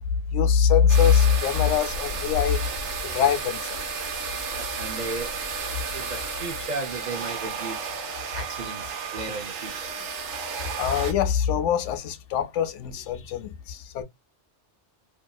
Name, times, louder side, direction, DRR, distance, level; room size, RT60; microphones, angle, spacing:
voice 1, 0.3-2.6 3.0-3.8 10.8-14.0, left 8 dB, 85° left, 0.9 m, -22 dB
sound 1, 0.9-11.1, right 5 dB, 75° right, 1.0 m, -32 dB
voice 2, 4.5-5.3 5.9-7.8 8.3-9.9, right 3 dB, 50° right, 0.5 m, -35 dB
2.7 x 2.5 x 2.2 m
omnidirectional pair, 1.2 m